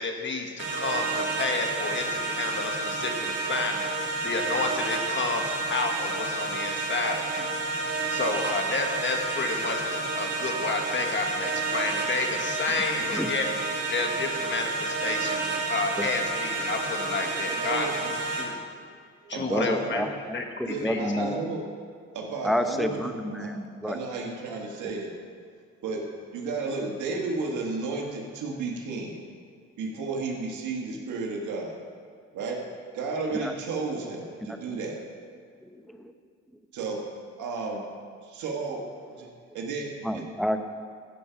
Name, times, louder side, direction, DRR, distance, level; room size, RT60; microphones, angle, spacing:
voice 1, 0.0-7.5 7.9-13.5 13.9-17.9 18.4-18.6 19.3-20.0 20.3-21.0, left 3 dB, 40° left, 3 dB, 1.5 m, -31 dB
sound 1, 0.6-18.4, right 3 dB, 55° right, 2.7 m, -30 dB
voice 2, 17.5-18.1 19.2-20.1 20.7-21.6 22.1-23.5 23.8-25.2 25.8-26.1 26.3-29.2 29.8-31.8 32.3-32.6 32.9-35.0 36.7-37.0 37.4-37.9 38.2-38.8 39.1-39.3 39.5-40.3, right 3 dB, 75° right, 0 dB, 1.8 m, -33 dB
voice 3, 19.5-21.4 22.4-24.0 33.4-33.5 34.5-34.6 35.6-36.1 40.0-40.6, equal, ahead, 7 dB, 0.7 m, -29 dB
15.0 x 5.3 x 5.8 m, 2.1 s
cardioid pair, 90°, 30 cm